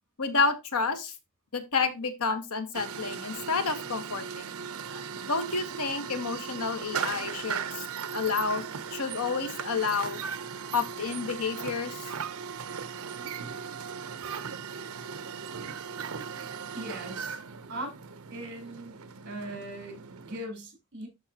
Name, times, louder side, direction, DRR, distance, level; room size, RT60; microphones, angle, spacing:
voice 1, 0.2-1.1 1.5-4.5 4.9-5.0 5.3-7.8 8.1-10.2 10.7-12.1, left 4 dB, 85° left, 1.2 m, -30 dB
sound 1, 2.7-20.4, right 6 dB, 75° right, 0.8 m, -38 dB
voice 2, 16.7-17.4 17.7-18.0 18.3-19.0 19.2-21.1, right 1 dB, 55° right, 4.1 m, -39 dB
12.0 x 4.5 x 2.9 m
head